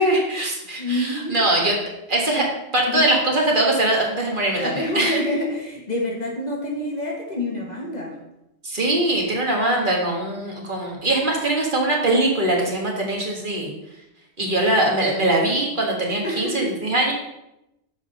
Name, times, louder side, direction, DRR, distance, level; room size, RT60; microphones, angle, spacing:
voice 1, 0.0-1.8 2.1-2.4 2.7-5.2 8.6-13.7 14.4-17.1, right 1 dB, 45° right, -1 dB, 1.7 m, -22 dB
voice 2, 0.8-1.6 2.4-2.5 2.9-3.1 4.6-8.2 16.2-16.8, left 1 dB, 40° left, -1 dB, 1.3 m, -27 dB
7.3 x 5.0 x 5.2 m, 0.88 s
omnidirectional pair, 1.2 m